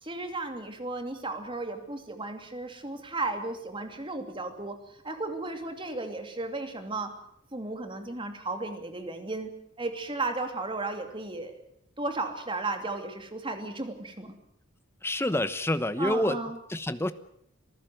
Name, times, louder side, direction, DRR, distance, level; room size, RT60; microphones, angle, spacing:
voice 1, 0.0-4.8 5.0-7.1 7.5-11.6 12.0-14.4 16.0-16.6, right 2 dB, 25° right, 6 dB, 2.7 m, -34 dB
voice 2, 15.0-16.4 16.7-17.1, left 1 dB, 10° left, 12 dB, 1.0 m, -27 dB
27.0 x 15.0 x 7.9 m, 0.73 s
head